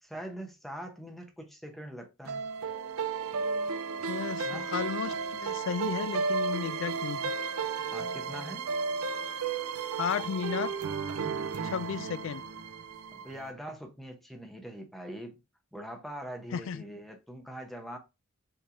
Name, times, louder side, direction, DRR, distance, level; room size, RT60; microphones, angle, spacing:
voice 1, 0.0-2.4 4.5-4.7 7.9-8.7 13.1-15.4 15.7-18.0, equal, ahead, 0.9 m, -42 dB
sound 1, 2.3-13.5, right 5 dB, 90° right, 0.6 m, -33 dB
voice 2, 4.1-7.3 9.9-10.7 11.6-12.4 16.5-16.8, left 7 dB, 60° left, 0.3 m, -34 dB
5.6 x 3.3 x 2.6 m
head